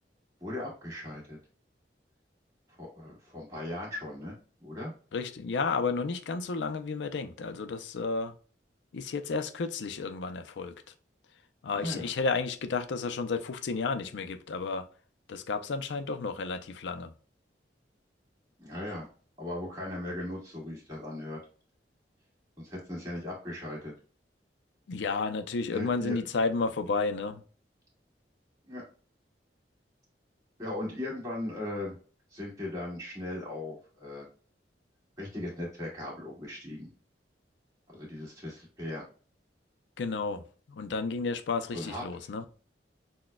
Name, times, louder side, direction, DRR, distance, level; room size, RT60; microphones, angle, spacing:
voice 1, 0.4-1.4 2.8-4.9 11.7-12.1 18.6-19.1 19.4-21.4 22.6-23.9 25.7-26.2 28.7-28.8 30.6-32.0 32.3-34.3 35.2-36.9 37.9-39.0 41.7-42.0, left 1 dB, 20° right, 1.6 m, -38 dB
voice 2, 5.1-8.3 8.9-10.7 11.6-14.9 15.3-17.1 24.9-27.4 40.0-40.4 40.7-42.4, left 4 dB, 90° left, 0.4 m, -32 dB
6.0 x 2.2 x 2.2 m
head